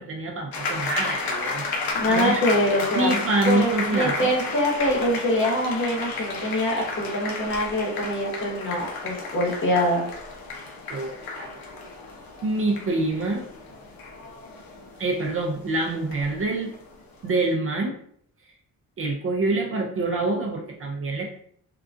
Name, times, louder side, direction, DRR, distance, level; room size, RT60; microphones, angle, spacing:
voice 1, 0.0-2.4 2.9-4.1 10.9-11.5 12.4-13.5 15.0-16.7 17.2-18.0 19.0-21.3, right 2 dB, 40° right, 1 dB, 0.4 m, -26 dB
sound 1, 0.5-17.2, left 3 dB, 80° left, 0.8 m, -33 dB
voice 2, 1.9-3.2 3.4-10.1, left 1 dB, 35° left, -1 dB, 0.8 m, -24 dB
3.7 x 2.3 x 2.4 m, 0.64 s
cardioid pair, 145°, 36 cm